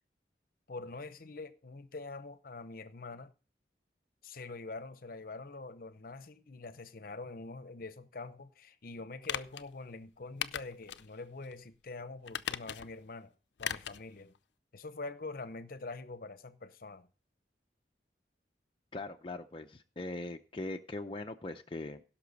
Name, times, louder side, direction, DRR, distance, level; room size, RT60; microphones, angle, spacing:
voice 1, 0.7-3.3 4.2-13.3 13.6-14.3 14.7-17.1, left 3 dB, 55° left, 0.8 m, -45 dB
sound 1, 9.2-9.6 10.4-11.1 11.4-11.5 12.3-13.0 13.6-14.0 14.3-14.4, left 9 dB, 85° left, 0.5 m, -38 dB
voice 2, 18.9-22.0, left 2 dB, 30° left, 0.6 m, -41 dB
17.0 x 6.0 x 4.1 m
head